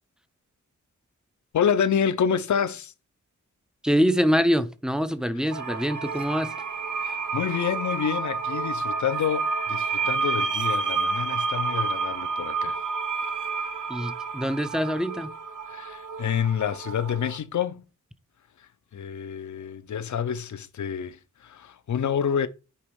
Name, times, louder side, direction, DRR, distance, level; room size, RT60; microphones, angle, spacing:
voice 1, 1.5-2.9 7.0-12.8 15.7-17.8 18.9-22.5, left 8 dB, 70° left, 0.6 m, -28 dB
voice 2, 3.8-6.5 13.9-15.3, equal, ahead, 0.5 m, -24 dB
sound 1, 5.5-17.4, right 4 dB, 75° right, 0.8 m, -30 dB
8.5 x 3.0 x 4.6 m
wide cardioid pair, 90°, 31 cm